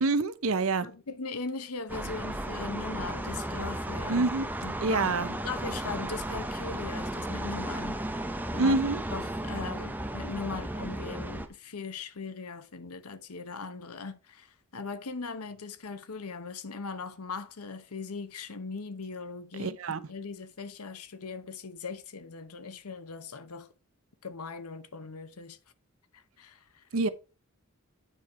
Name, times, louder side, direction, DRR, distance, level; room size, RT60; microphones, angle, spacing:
voice 1, 0.0-0.9 4.1-4.5 4.8-5.3 8.6-9.0 19.5-20.0 26.9-27.1, right 3 dB, 65° right, 0.7 m, -26 dB
voice 2, 0.8-4.3 4.6-8.8 9.1-19.8 20.1-23.7 24.2-25.6 26.1-26.8, left 4 dB, 85° left, 0.9 m, -39 dB
sound 1, 1.9-11.5, right 1 dB, 10° right, 0.7 m, -35 dB
9.2 x 4.5 x 4.7 m
head